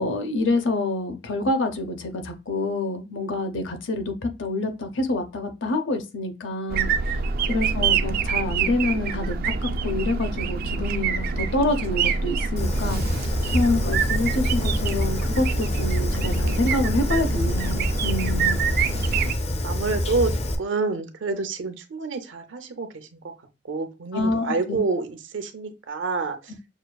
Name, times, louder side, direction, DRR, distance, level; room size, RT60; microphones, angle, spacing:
voice 1, 0.0-7.2 7.5-18.6 24.1-24.8, left 2 dB, 85° left, 0.7 m, -27 dB
sound 1, 6.7-19.3, right 5 dB, 50° right, 0.3 m, -26 dB
voice 2, 7.4-7.8 19.6-23.3 23.6-26.5, right 3 dB, 85° right, 0.6 m, -28 dB
Fire, 12.6-20.6, left 1 dB, 35° left, 0.5 m, -26 dB
6.3 x 2.4 x 2.3 m
head